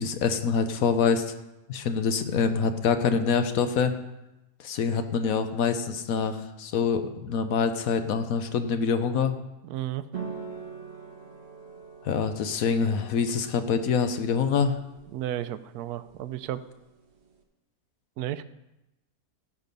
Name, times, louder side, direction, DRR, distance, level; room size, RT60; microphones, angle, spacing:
voice 1, 0.0-1.3 1.7-3.9 4.6-9.4 12.0-14.8, left 6 dB, 70° left, 9 dB, 1.1 m, -25 dB
voice 2, 9.6-10.0 15.1-16.6 18.2-18.4, right 12 dB, 85° right, 14 dB, 1.1 m, -33 dB
sound 1, 10.1-17.4, right 6 dB, 50° right, 1.4 m, -44 dB
16.0 x 6.0 x 5.3 m, 0.95 s
omnidirectional pair, 1.6 m